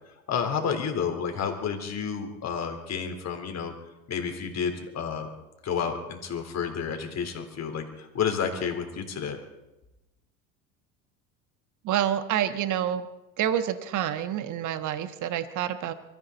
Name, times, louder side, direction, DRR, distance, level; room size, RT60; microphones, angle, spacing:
voice 1, 0.3-3.7 4.1-5.3 5.6-9.4, left 6 dB, 40° left, 5 dB, 3.6 m, -30 dB
voice 2, 11.8-13.1 13.4-15.9, right 10 dB, 45° right, 11 dB, 1.3 m, -28 dB
24.5 x 14.5 x 4.1 m, 0.97 s
hypercardioid pair, 85°, 42 cm